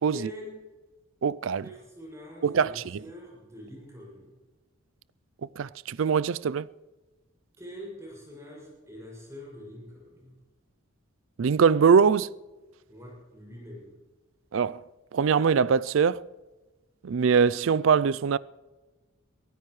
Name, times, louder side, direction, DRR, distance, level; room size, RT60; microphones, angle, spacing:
voice 1, 0.1-0.6 1.6-4.3 7.6-10.4 12.9-13.9, left 1 dB, 15° right, 6.5 m, -44 dB
voice 2, 1.2-1.6 2.4-2.8 5.6-6.7 11.4-12.3 14.5-14.8 15.1-16.2 17.0-18.4, right 6 dB, 70° right, 0.4 m, -22 dB
23.0 x 16.0 x 3.2 m
head